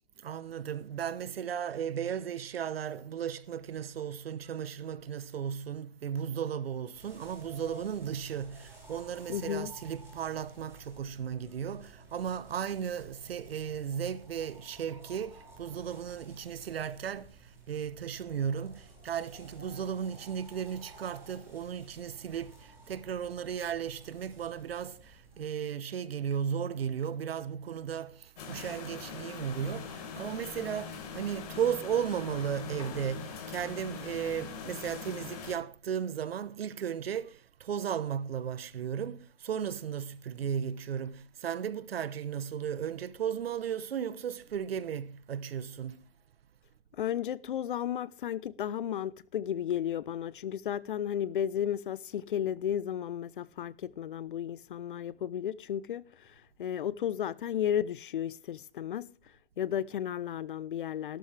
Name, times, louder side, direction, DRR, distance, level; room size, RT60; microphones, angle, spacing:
voice 1, 0.2-46.0, right 8 dB, 85° right, 1.1 m, -35 dB
sound 1, 6.9-25.4, right 2 dB, 10° right, 5.6 m, -54 dB
voice 2, 9.3-9.7 47.0-59.1 59.6-61.2, left 10 dB, 60° left, 0.9 m, -33 dB
sound 2, 28.4-35.5, left 6 dB, 40° left, 4.3 m, -42 dB
17.0 x 12.5 x 3.4 m
hypercardioid pair, 165°, 29 cm